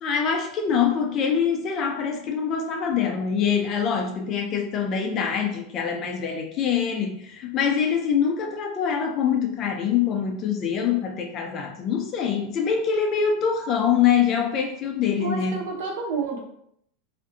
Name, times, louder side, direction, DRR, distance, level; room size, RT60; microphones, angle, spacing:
voice 1, 0.0-15.6, left 7 dB, 25° left, 3 dB, 0.3 m, -24 dB
voice 2, 15.2-16.4, right 4 dB, 55° right, 0 dB, 0.9 m, -29 dB
3.5 x 2.5 x 2.6 m, 0.72 s
supercardioid pair, 175°, 0 cm